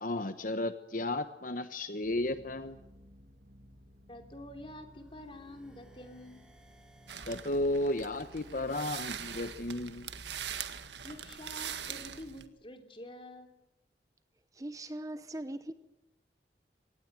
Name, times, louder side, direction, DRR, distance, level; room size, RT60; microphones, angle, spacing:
voice 1, 0.0-2.8 7.3-10.1, left 1 dB, 50° left, 1.0 m, -33 dB
sound 1, 2.0-7.2, equal, 55° right, 2.9 m, -57 dB
voice 2, 4.1-6.4 11.0-13.5, left 1 dB, 30° left, 3.2 m, -47 dB
sound 2, 4.8-10.8, equal, 5° right, 5.3 m, -62 dB
sound 3, 7.1-12.5, right 8 dB, 80° right, 1.7 m, -42 dB
voice 3, 14.5-15.7, right 1 dB, 20° right, 0.9 m, -40 dB
25.0 x 19.0 x 9.0 m
head